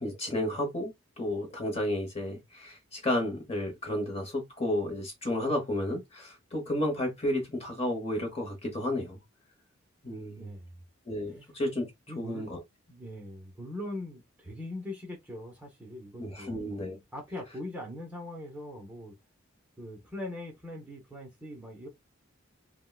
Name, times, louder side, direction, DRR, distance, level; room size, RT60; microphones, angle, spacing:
voice 1, 0.0-9.2 10.0-10.5 11.1-11.9 12.2-12.6 16.2-17.0, left 1 dB, 30° left, 0.9 m, -32 dB
voice 2, 10.4-10.8 11.3-11.5 12.1-12.5 12.9-19.1 19.8-21.9, left 1 dB, 5° right, 0.8 m, -41 dB
3.5 x 2.2 x 2.3 m
head